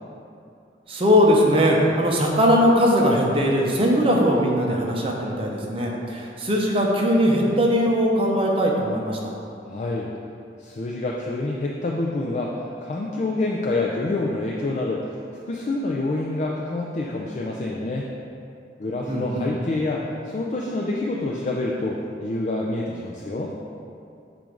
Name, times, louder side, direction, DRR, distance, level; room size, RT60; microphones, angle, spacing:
voice 1, 0.9-9.2 19.1-19.5, equal, 30° right, -1 dB, 0.7 m, -20 dB
voice 2, 9.6-10.1 10.6-15.2 15.5-18.1 18.8-23.5, left 2 dB, 40° left, -2 dB, 0.4 m, -27 dB
7.5 x 2.6 x 5.0 m, 2.6 s
head